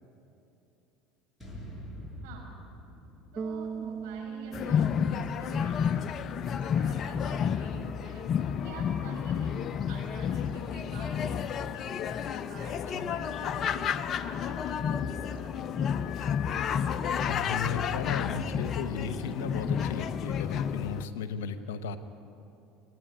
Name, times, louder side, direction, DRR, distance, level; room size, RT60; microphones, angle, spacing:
sound 1, 1.4-5.6, equal, 10° left, 7.2 m, -47 dB
voice 1, 3.3-6.1 6.4-8.3 8.6-9.6 9.9-11.4 11.7-11.9 12.3-15.6 16.0-16.2, right 4 dB, 70° right, -1 dB, 6.2 m, -48 dB
Bass guitar, 3.4-6.5, right 6 dB, 25° right, 0.6 m, -40 dB
sound 2, 4.5-21.1, left 7 dB, 45° left, 0.7 m, -31 dB
voice 2, 17.3-22.0, left 6 dB, 75° left, 11 dB, 1.1 m, -35 dB
29.5 x 10.0 x 9.9 m, 2.8 s
hypercardioid pair, 70°, 0 cm